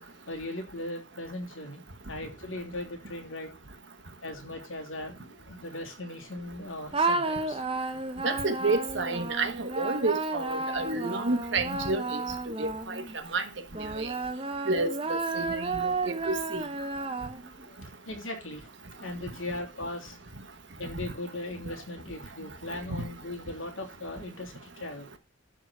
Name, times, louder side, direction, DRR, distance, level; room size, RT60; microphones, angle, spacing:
voice 1, 0.3-3.6 4.2-7.6 17.7-18.7 19.0-20.2 20.8-25.1, left 1 dB, 75° left, 2.9 m, -38 dB
sound 1, 6.9-13.2 13.7-17.7, right 3 dB, 25° right, 0.9 m, -32 dB
voice 2, 8.2-12.2 12.6-13.0 13.3-13.4 13.8-14.1 14.7-16.6 23.0-23.1, right 3 dB, 60° right, 1.4 m, -30 dB
12.0 x 4.1 x 6.1 m
head